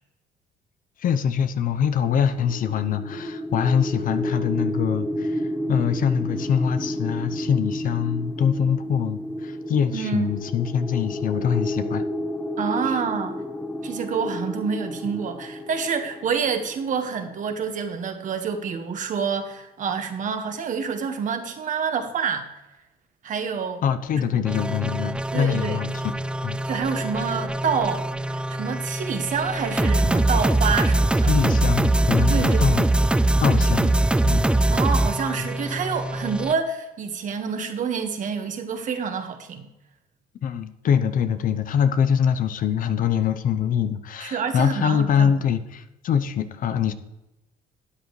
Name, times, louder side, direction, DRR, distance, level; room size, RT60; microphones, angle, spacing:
voice 1, 1.0-12.1 12.9-13.0 23.8-25.9 26.4-26.6 31.3-32.9 33.4-34.0 34.2-34.5 35.4-35.5 40.4-46.9, left 8 dB, 55° left, 11 dB, 0.8 m, -24 dB
sound 1, 2.2-17.2, equal, 10° left, 0.8 m, -31 dB
voice 2, 9.9-10.3 12.6-13.4 13.8-22.6 23.2-23.8 24.1-24.4 25.3-25.8 26.7-31.4 32.3-32.8 34.7-39.7 44.2-45.3, right 6 dB, 50° right, 6 dB, 1.5 m, -27 dB
sound 2, 24.5-36.5, right 2 dB, 5° right, 0.4 m, -22 dB
12.5 x 9.1 x 3.2 m, 1.0 s
cardioid pair, 110°, 17 cm